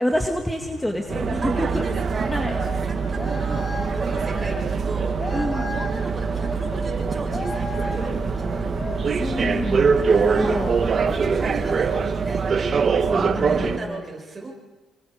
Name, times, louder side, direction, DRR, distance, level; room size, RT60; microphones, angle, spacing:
voice 1, 0.0-1.8 2.3-2.5 5.3-5.7 9.2-10.8 13.1-14.0, left 1 dB, 10° left, 3 dB, 2.0 m, -27 dB
sound 1, 0.6-13.3, left 4 dB, 85° left, 3.7 m, -38 dB
sound 2, 1.1-13.8, right 5 dB, 50° right, 1.7 m, -23 dB
voice 2, 1.4-5.1 5.7-8.7 10.0-10.7 11.1-12.5 13.3-14.6, right 3 dB, 25° right, 0 dB, 7.1 m, -36 dB
sound 3, 1.8-12.9, left 3 dB, 35° left, 4.9 m, -39 dB
28.0 x 24.5 x 5.1 m, 1.2 s
cardioid pair, 90°, 0 cm